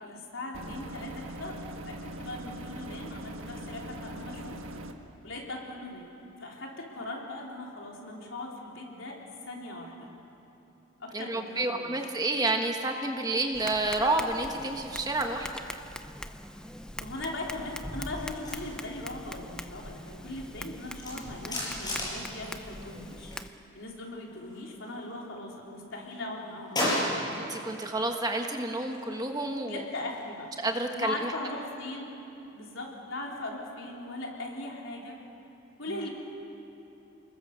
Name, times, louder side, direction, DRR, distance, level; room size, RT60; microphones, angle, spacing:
voice 1, 0.0-1.6 1.9-4.6 5.2-10.1 11.0-12.0 17.0-23.3 23.7-27.3 29.6-30.5 30.9-32.1 32.5-35.2 35.8-36.1, left 2 dB, 70° left, -2 dB, 4.0 m, -39 dB
sound 1, 0.5-4.9, right 1 dB, 70° right, 1.5 m, -41 dB
voice 2, 11.1-15.5 27.5-29.8 30.6-31.3 35.9-36.0, right 2 dB, 20° right, 3 dB, 1.3 m, -29 dB
Tap, 13.5-23.5, left 1 dB, 5° left, 0.5 m, -42 dB
sound 2, 18.1-23.5 23.7-25.4 25.7-27.8 28.2-30.9, left 1 dB, 20° left, 6.6 m, -37 dB
29.0 x 21.5 x 6.8 m, 3.0 s
head